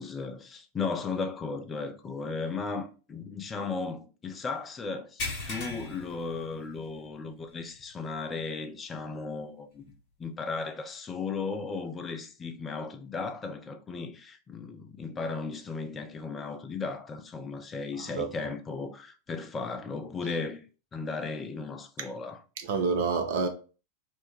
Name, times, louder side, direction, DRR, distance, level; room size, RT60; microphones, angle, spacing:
voice 1, 0.0-9.8 10.2-20.6 20.9-22.4, left 4 dB, 20° left, 0.4 m, -36 dB
sound 1, 5.2-7.1 7.4-7.6 8.1-8.2 9.9-10.0, left 2 dB, 45° left, 1.0 m, -37 dB
voice 2, 22.6-23.5, right 5 dB, 55° right, 0.4 m, -28 dB
2.4 x 2.1 x 2.9 m
figure-of-eight pair, 90°, 0 cm